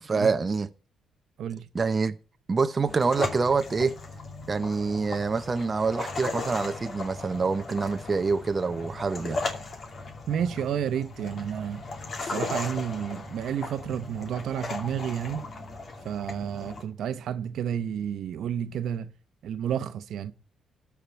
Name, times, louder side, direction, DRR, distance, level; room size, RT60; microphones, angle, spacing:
voice 1, 0.0-0.7 1.7-2.1 2.5-3.9 4.5-9.4, right 4 dB, 30° right, 0.7 m, -26 dB
sound 1, 2.9-16.8, left 3 dB, 45° left, 2.6 m, -37 dB
voice 2, 10.3-11.8 12.3-15.4 16.0-19.1 19.4-20.3, right 9 dB, 70° right, 0.9 m, -31 dB
13.0 x 4.8 x 8.7 m
cardioid pair, 90°, 0 cm